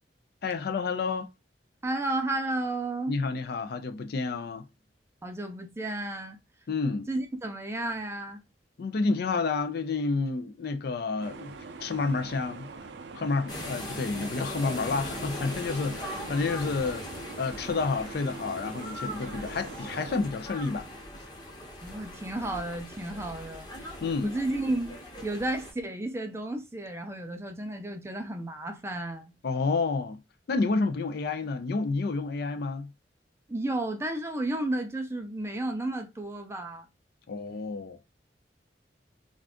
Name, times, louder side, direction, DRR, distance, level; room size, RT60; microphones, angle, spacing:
voice 1, 0.4-1.3 3.1-4.6 6.7-7.1 8.8-11.5 11.8-12.7 13.1-17.1 17.4-20.9 24.0-24.3 29.4-30.2 30.5-32.9 37.3-38.0, left 4 dB, 60° left, 0.4 m, -29 dB
voice 2, 1.8-3.1 5.2-6.4 7.1-8.4 21.8-23.9 24.2-29.3 33.5-36.9, right 1 dB, 15° right, 0.5 m, -32 dB
sound 1, 11.2-20.2, right 4 dB, 70° right, 0.4 m, -44 dB
sound 2, 13.5-25.7, left 1 dB, 25° left, 0.9 m, -40 dB
2.5 x 2.4 x 3.5 m
head